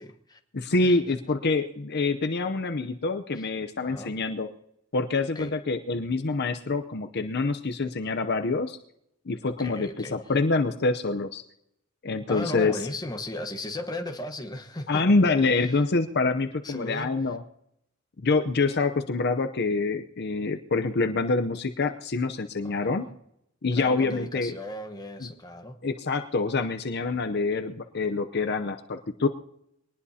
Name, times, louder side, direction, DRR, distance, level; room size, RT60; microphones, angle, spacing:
voice 1, 0.0-0.4 0.8-1.0 3.3-3.5 3.9-4.1 5.3-5.5 9.6-10.2 12.3-15.3 15.6-15.8 16.6-17.3 22.6-23.2 23.7-25.8, left 1 dB, 20° left, 5 dB, 1.2 m, -36 dB
voice 2, 0.5-4.5 4.9-8.8 9.3-11.4 12.0-12.8 14.9-17.4 18.2-23.0 23.6-24.6 25.2-25.3 25.8-29.3, left 3 dB, 55° left, 8 dB, 0.7 m, -26 dB
23.0 x 19.0 x 2.8 m, 0.78 s
head